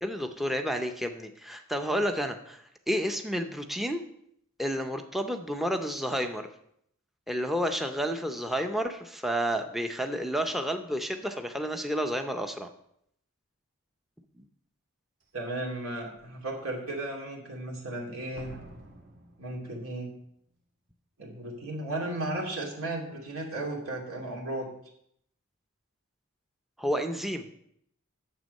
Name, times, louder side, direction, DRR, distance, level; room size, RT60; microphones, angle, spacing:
voice 1, 0.0-4.0 4.6-6.5 7.3-12.7 26.8-27.5, equal, ahead, 6 dB, 0.5 m, -30 dB
Slam, 15.2-15.3 15.9-16.3 18.4-20.2 20.5-20.6, right 1 dB, 55° right, 1.6 m, -50 dB
voice 2, 15.3-18.6 19.4-20.1 21.2-24.7, right 2 dB, 85° right, -1 dB, 2.6 m, -35 dB
9.2 x 7.3 x 5.3 m, 0.72 s
head